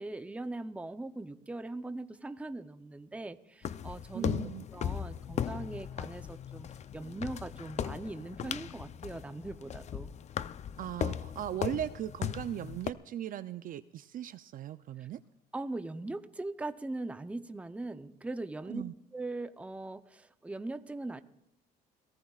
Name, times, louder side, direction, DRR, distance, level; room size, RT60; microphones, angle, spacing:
voice 1, 0.0-4.3 4.7-6.7 6.9-10.1 15.5-18.8 19.1-21.2, right 2 dB, 10° right, 9 dB, 0.7 m, -40 dB
sound 1, 3.6-12.9, left 9 dB, 40° left, 0.5 m, -37 dB
voice 2, 4.1-4.7 10.8-15.2 18.7-18.9, right 11 dB, 55° right, 12 dB, 0.5 m, -38 dB
29.0 x 18.0 x 2.4 m, 0.87 s
cardioid pair, 110°, 17 cm